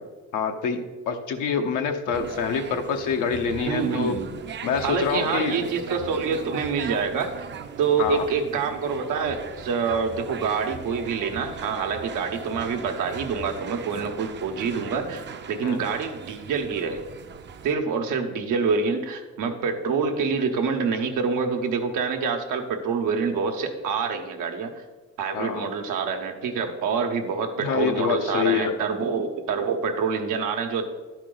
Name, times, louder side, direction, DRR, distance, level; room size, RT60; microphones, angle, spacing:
voice 1, 0.3-0.8 1.1-4.1 4.6-5.6 8.0-8.3 15.6-15.8 25.3-25.7 27.6-28.7, left 6 dB, 90° left, 5 dB, 0.9 m, -26 dB
sound 1, 2.1-17.7, right 7 dB, 40° right, 0.5 m, -39 dB
voice 2, 3.6-4.3 4.8-7.5 7.8-17.0 17.6-24.7 25.2-30.8, right 5 dB, 90° right, 4 dB, 1.0 m, -26 dB
11.5 x 4.8 x 3.9 m, 1.3 s
cardioid pair, 90°, 30 cm